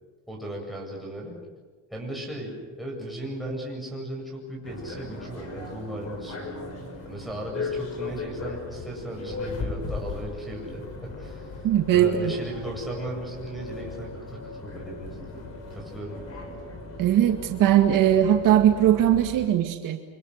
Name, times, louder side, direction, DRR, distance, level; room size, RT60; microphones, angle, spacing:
voice 1, 0.3-1.4 1.9-6.5 7.0-11.5 11.9-15.4 15.7-16.6, right 1 dB, ahead, -2 dB, 8.0 m, -36 dB
sound 1, 4.6-19.5, left 3 dB, 45° left, 5.5 m, -37 dB
voice 2, 11.6-12.4 17.0-20.0, right 11 dB, 65° right, 5 dB, 2.1 m, -20 dB
29.5 x 25.5 x 6.7 m, 1.5 s
cardioid pair, 140°, 34 cm